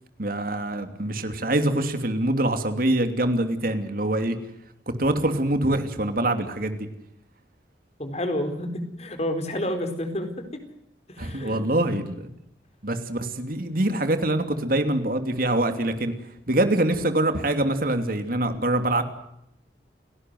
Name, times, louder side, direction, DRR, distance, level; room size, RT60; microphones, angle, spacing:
voice 1, 0.2-4.4 4.9-6.9 11.2-12.3 12.8-16.1 16.5-19.0, right 1 dB, 55° right, 8 dB, 2.9 m, -24 dB
voice 2, 8.0-10.6 11.1-11.6, left 1 dB, 40° left, 7 dB, 4.2 m, -30 dB
30.0 x 18.5 x 7.9 m, 0.83 s
head